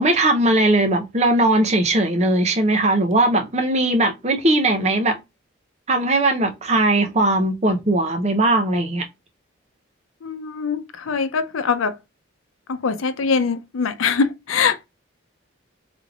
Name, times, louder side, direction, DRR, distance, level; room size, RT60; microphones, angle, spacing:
voice 1, 0.0-5.2 5.9-9.0, right 2 dB, 35° right, 0.7 m, -19 dB
voice 2, 10.2-12.0 12.7-14.9, left 5 dB, 90° left, 0.5 m, -23 dB
3.3 x 3.3 x 2.4 m
head